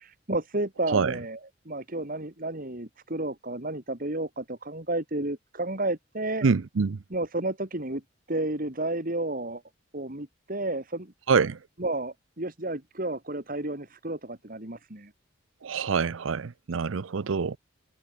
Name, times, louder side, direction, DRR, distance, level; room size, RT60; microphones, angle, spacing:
voice 1, 0.0-1.4 1.6-6.5 7.1-8.0 8.3-9.6 9.9-11.1 11.8-15.1, right 2 dB, 45° right, 2.8 m, -32 dB
voice 2, 6.4-7.0 11.3-11.6 15.6-17.6, right 5 dB, 85° right, 0.6 m, -25 dB
head